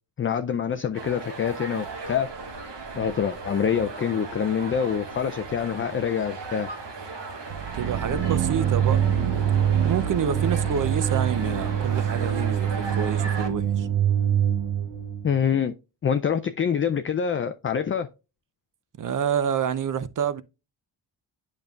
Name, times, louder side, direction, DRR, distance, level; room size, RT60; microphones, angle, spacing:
voice 1, 0.2-2.3 3.0-6.7 15.2-15.7 16.0-18.1, left 7 dB, 30° left, 0.4 m, -26 dB
sound 1, 0.9-13.5, right 3 dB, 60° right, 1.3 m, -37 dB
sound 2, 7.5-15.4, right 9 dB, 80° right, 0.8 m, -25 dB
voice 2, 7.7-9.4 9.8-13.9 19.0-20.4, right 8 dB, 40° right, 0.6 m, -28 dB
8.6 x 5.3 x 2.3 m
cardioid pair, 70°, 48 cm